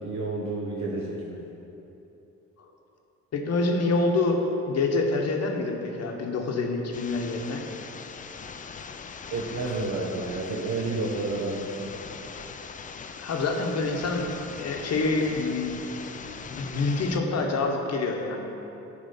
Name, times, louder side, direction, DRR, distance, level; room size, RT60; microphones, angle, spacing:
voice 1, 0.0-1.4 9.3-11.9, right 2 dB, 65° right, -3 dB, 1.0 m, -30 dB
voice 2, 3.3-4.4 4.7-7.6 13.2-15.7 16.5-18.5, left 3 dB, 55° left, 2 dB, 0.9 m, -27 dB
sound 1, 6.9-17.2, left 5 dB, 25° left, 0.4 m, -41 dB
8.8 x 3.2 x 5.5 m, 3.0 s
cardioid pair, 90°, 30 cm